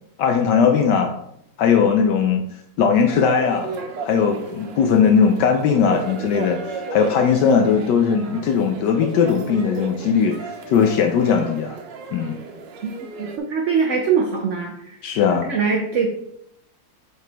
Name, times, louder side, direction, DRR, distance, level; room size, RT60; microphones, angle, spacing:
voice 1, 0.2-1.1 1.6-2.4 2.8-3.7 4.0-11.8 12.1-12.3 15.0-15.5, left 6 dB, 75° left, 5 dB, 1.2 m, -19 dB
sound 1, 2.9-13.4, right 4 dB, 80° right, 1.6 m, -34 dB
voice 2, 13.2-15.0 15.3-16.1, right 6 dB, 55° right, 2 dB, 0.8 m, -22 dB
7.7 x 4.9 x 3.4 m, 0.77 s
omnidirectional pair, 2.0 m